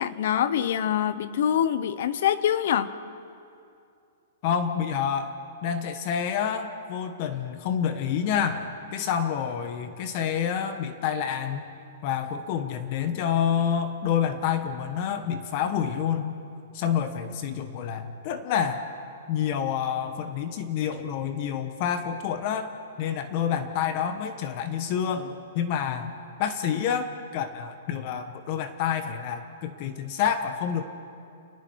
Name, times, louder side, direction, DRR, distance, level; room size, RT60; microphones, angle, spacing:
voice 1, 0.0-2.9, left 9 dB, 60° left, 14 dB, 1.0 m, -25 dB
voice 2, 4.4-5.3 5.6-11.6 12.0-16.3 16.7-18.8 19.3-22.7 23.0-26.1 26.4-30.8, left 8 dB, 40° left, 9 dB, 1.2 m, -28 dB
29.0 x 20.0 x 4.8 m, 2.5 s
hypercardioid pair, 160°, 0 cm